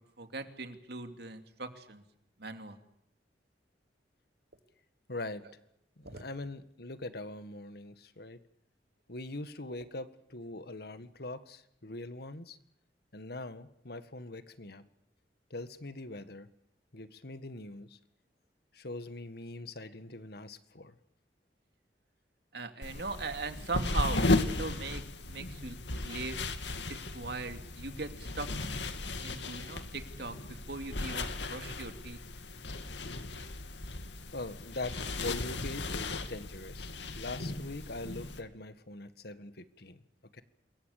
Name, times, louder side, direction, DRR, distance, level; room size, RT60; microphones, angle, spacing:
voice 1, 0.2-2.0 2.4-2.8 6.0-6.3 22.5-26.4 26.9-28.5 29.2-32.2, right 3 dB, 65° right, 7 dB, 2.8 m, -40 dB
voice 2, 5.1-5.5 6.0-8.4 9.1-12.6 13.1-14.9 15.5-16.5 16.9-18.0 18.7-21.0 34.3-40.0 40.3-40.4, left 2 dB, 65° left, 12 dB, 1.8 m, -42 dB
sound 1, 22.8-38.4, left 2 dB, 90° left, 2.4 m, -36 dB
27.0 x 22.5 x 6.8 m, 0.74 s
head